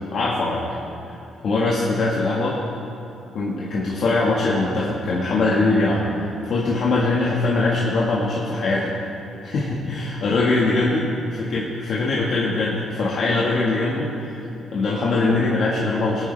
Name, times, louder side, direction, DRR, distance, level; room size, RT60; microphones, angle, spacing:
voice 1, 0.1-0.8 1.1-1.2 1.4-2.6 3.3-8.9 9.4-14.4 14.7-16.3, left 2 dB, 60° left, -5 dB, 1.7 m, -22 dB
21.0 x 9.4 x 3.4 m, 2.8 s
cardioid pair, 90°, 0 cm